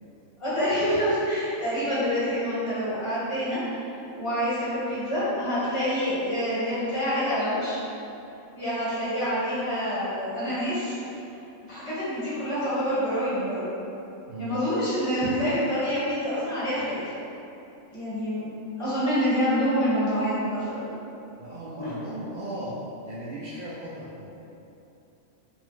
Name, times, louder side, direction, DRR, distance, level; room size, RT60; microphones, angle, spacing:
voice 1, 0.4-3.6 4.2-7.8 8.5-11.0 11.6-13.7 14.4-17.1 17.9-18.4 18.8-20.8, equal, 25° left, -11 dB, 1.0 m, -27 dB
voice 2, 14.3-14.6 21.4-24.3, right 1 dB, 70° right, -8 dB, 0.5 m, -36 dB
4.1 x 2.3 x 3.0 m, 2.9 s
omnidirectional pair, 1.4 m